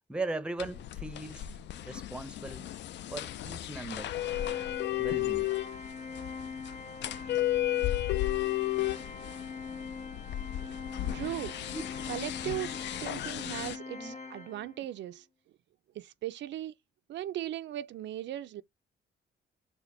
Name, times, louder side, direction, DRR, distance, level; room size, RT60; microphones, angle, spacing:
voice 1, 0.1-1.4 1.8-2.7 3.1-4.1 5.0-5.5 11.7-11.8 14.0-14.2, right 2 dB, 5° right, 0.6 m, -38 dB
sound 1, 0.6-13.8, left 14 dB, 65° left, 0.4 m, -34 dB
Organ, 4.2-14.9, left 4 dB, 35° left, 1.0 m, -43 dB
voice 2, 10.7-11.6 12.1-15.3 15.9-16.7 17.1-18.6, right 13 dB, 65° right, 0.4 m, -38 dB
4.2 x 2.2 x 4.2 m
cardioid pair, 90°, 20 cm